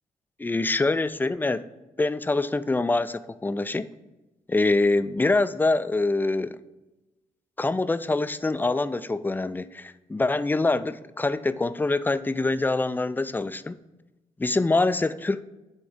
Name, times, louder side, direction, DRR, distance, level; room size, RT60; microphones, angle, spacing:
voice 1, 0.4-1.7 2.0-3.9 4.5-6.6 7.6-13.8 14.4-15.4, left 2 dB, 10° left, 14 dB, 0.4 m, -25 dB
9.2 x 3.5 x 4.9 m, 1.0 s
hypercardioid pair, 40°, 16 cm